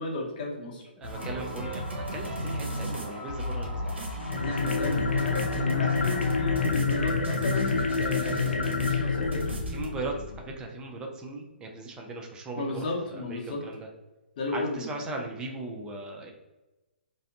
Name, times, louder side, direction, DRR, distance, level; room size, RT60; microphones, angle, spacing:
voice 1, 0.0-0.9 4.4-9.5 12.6-13.6 14.4-14.9, left 2 dB, 50° left, -1 dB, 0.8 m, -34 dB
voice 2, 1.0-4.0 9.7-10.1 10.4-12.8 13.1-13.9 14.5-16.3, right 2 dB, 15° right, 1 dB, 0.4 m, -38 dB
sound 1, 1.0-9.9, left 1 dB, 90° right, 0.7 m, -34 dB
sound 2, 1.1-6.7, left 2 dB, 20° left, 0.8 m, -43 dB
sound 3, 4.2-10.5, left 5 dB, 80° left, 0.4 m, -28 dB
2.6 x 2.1 x 2.5 m, 1.1 s
hypercardioid pair, 135°, 6 cm